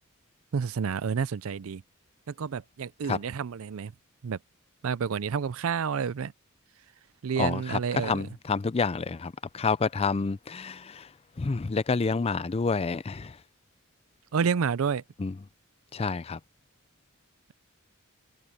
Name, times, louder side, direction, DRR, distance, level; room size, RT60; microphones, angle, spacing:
voice 1, 0.5-1.8 2.3-3.9 4.2-4.4 4.8-6.3 7.2-8.2 14.3-15.0, right 6 dB, 70° right, 0.5 m, -29 dB
voice 2, 7.4-11.1 11.4-13.4 15.2-15.4 15.9-16.4, left 4 dB, 30° left, 0.4 m, -29 dB
head